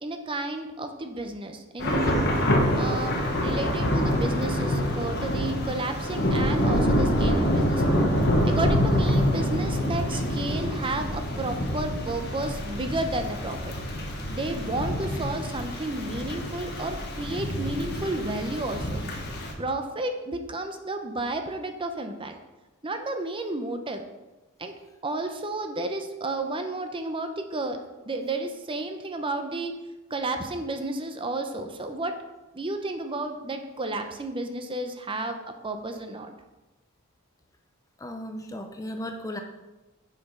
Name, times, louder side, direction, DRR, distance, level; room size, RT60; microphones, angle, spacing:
voice 1, 0.0-2.3 2.7-7.9 8.4-13.7 14.3-19.0 19.6-22.3 22.8-24.0 24.6-24.7 25.0-27.8 28.1-29.7 30.1-32.1 32.5-35.4 35.6-36.3, right 2 dB, 25° right, 6 dB, 0.6 m, -32 dB
Thunder / Rain, 1.8-19.5, equal, 50° left, 1.2 m, -26 dB
voice 2, 2.0-2.4 38.0-39.4, left 1 dB, 15° left, 5 dB, 0.5 m, -37 dB
6.8 x 5.1 x 5.4 m, 1.1 s
head